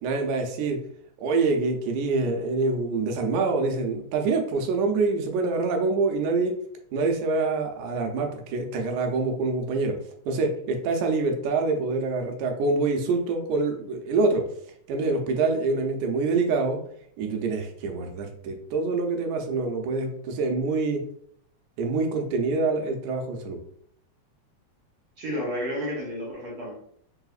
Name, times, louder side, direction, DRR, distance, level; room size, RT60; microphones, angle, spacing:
voice 1, 0.0-0.8 1.2-6.6 6.9-10.0 10.3-14.5 14.9-16.8 17.2-21.0 21.8-23.6, right 3 dB, 80° right, 3 dB, 2.1 m, -25 dB
voice 2, 25.2-26.7, equal, 65° right, -4 dB, 1.5 m, -31 dB
4.8 x 3.4 x 2.4 m, 0.66 s
omnidirectional pair, 3.5 m